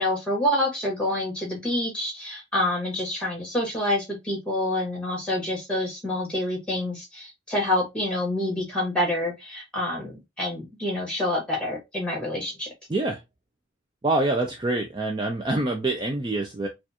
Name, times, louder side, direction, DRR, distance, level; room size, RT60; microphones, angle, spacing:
voice 1, 0.0-12.7, left 1 dB, 5° left, 1.8 m, -27 dB
voice 2, 12.9-13.2 14.0-16.7, right 2 dB, 25° right, 0.4 m, -25 dB
4.4 x 2.4 x 2.8 m
head